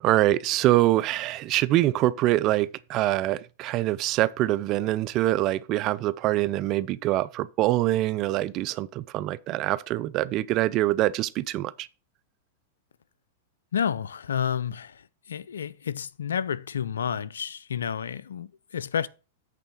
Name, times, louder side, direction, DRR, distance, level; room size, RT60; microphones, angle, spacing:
voice 1, 0.0-11.9, right 15 dB, 45° right, 0.5 m, -24 dB
voice 2, 13.7-19.1, left 8 dB, 85° left, 0.4 m, -30 dB
8.4 x 3.5 x 6.5 m
hypercardioid pair, 105°, 0 cm